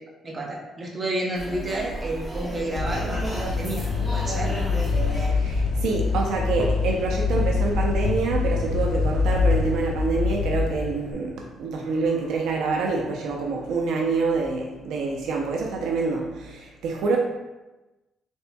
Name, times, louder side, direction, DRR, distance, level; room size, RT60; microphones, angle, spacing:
voice 1, 0.2-3.8 4.1-4.5, right 1 dB, 25° right, -1 dB, 0.6 m, -30 dB
sound 1, 1.3-6.5, equal, ahead, 0.9 m, -33 dB
sound 2, 2.8-11.1, left 4 dB, 60° left, 0.3 m, -25 dB
voice 2, 5.3-17.2, right 4 dB, 80° right, 0 dB, 0.5 m, -26 dB
4.2 x 3.3 x 2.2 m, 1.1 s
cardioid pair, 165°, 0 cm